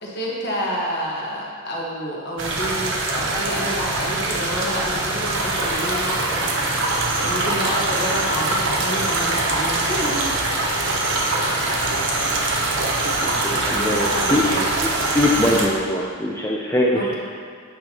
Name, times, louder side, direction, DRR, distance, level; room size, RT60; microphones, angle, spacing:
voice 1, 0.0-6.5 7.2-10.3 13.1-13.3 13.8-14.6 16.9-17.1, equal, 50° left, -4 dB, 1.3 m, -28 dB
sound 1, 2.4-15.7, right 2 dB, 55° right, 0.8 m, -23 dB
voice 2, 13.4-14.4 15.1-17.1, left 1 dB, 10° left, -4 dB, 0.4 m, -22 dB
8.7 x 6.1 x 2.9 m, 2.1 s
head